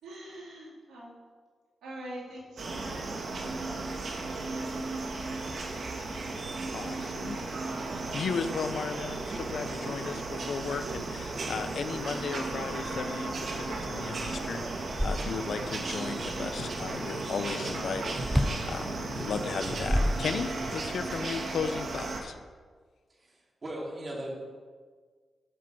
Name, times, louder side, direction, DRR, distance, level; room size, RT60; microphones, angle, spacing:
voice 1, 0.0-1.1 1.8-6.3 6.6-7.8 21.1-21.5, right 1 dB, 90° right, -5 dB, 3.7 m, -47 dB
sound 1, 2.6-22.2, right 3 dB, 65° right, 1.7 m, -35 dB
voice 2, 6.7-7.4 8.1-22.4, left 6 dB, 75° left, 10 dB, 0.7 m, -35 dB
sound 2, 13.7-13.8 14.2-15.7 18.2-18.7 19.5-20.7, equal, 5° right, 0.8 m, -29 dB
voice 3, 23.1-24.4, right 1 dB, 45° right, -3 dB, 3.5 m, -38 dB
12.5 x 6.1 x 5.9 m, 1.5 s
cardioid pair, 55°, 0 cm